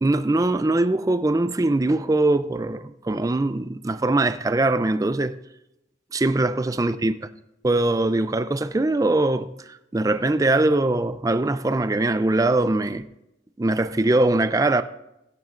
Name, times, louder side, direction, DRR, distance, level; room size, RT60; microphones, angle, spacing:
voice 1, 0.0-5.4 6.1-7.2 7.6-13.1 13.6-14.8, right 2 dB, 15° right, 0.3 m, -22 dB
16.5 x 12.5 x 2.5 m
head